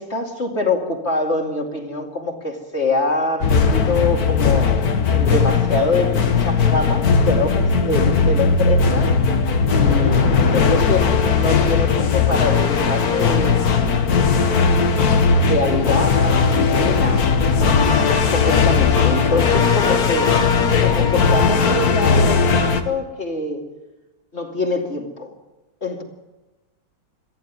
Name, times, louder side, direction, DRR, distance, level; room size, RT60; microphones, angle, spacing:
voice 1, 0.0-9.1 9.7-13.6 15.3-17.3 18.3-20.4 20.8-23.7 24.3-25.3 25.8-26.0, left 2 dB, 30° left, 2 dB, 2.7 m, -24 dB
sound 1, 3.4-22.8, left 5 dB, 45° left, 1.7 m, -17 dB
23.0 x 14.5 x 9.6 m, 1.1 s
omnidirectional pair, 2.4 m